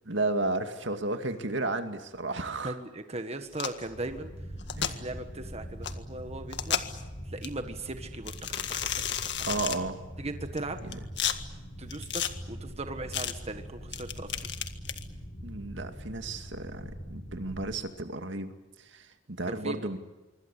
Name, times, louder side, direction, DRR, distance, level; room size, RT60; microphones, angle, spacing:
voice 1, 0.0-2.8 4.8-5.0 9.5-10.0 10.8-11.0 15.4-20.0, right 2 dB, 70° right, 7 dB, 2.4 m, -33 dB
voice 2, 2.6-4.3 4.8-6.8 7.3-9.1 10.2-10.8 11.8-14.5 19.5-19.8, right 2 dB, 35° right, 7 dB, 1.7 m, -38 dB
sound 1, 3.5-3.8 4.6-4.9 5.8-5.9 6.5-7.0 7.4-7.5 8.3-9.8 10.6-11.4 11.9-12.3 13.1-13.3 13.9-15.0, left 9 dB, 65° left, 1.8 m, -32 dB
sound 2, 3.8-17.8, equal, 35° left, 4.6 m, -43 dB
25.5 x 24.5 x 8.5 m, 1.1 s
head